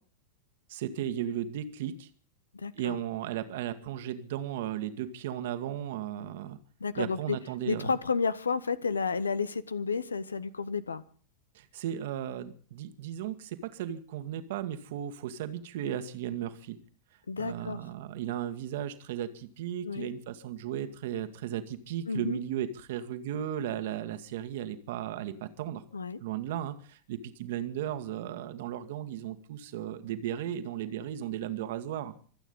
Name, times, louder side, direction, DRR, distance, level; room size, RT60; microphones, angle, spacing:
voice 1, 0.7-2.1 2.8-6.6 6.9-7.9 11.6-16.8 17.4-25.8 26.2-32.1, right 10 dB, 55° right, 10 dB, 1.8 m, -35 dB
voice 2, 2.5-3.0 6.8-7.4 7.6-11.0 17.3-17.8 19.8-20.1 22.1-22.4 25.9-26.2, left 5 dB, 75° left, 17 dB, 1.0 m, -31 dB
25.5 x 9.1 x 5.4 m, 0.43 s
figure-of-eight pair, 90°, 0 cm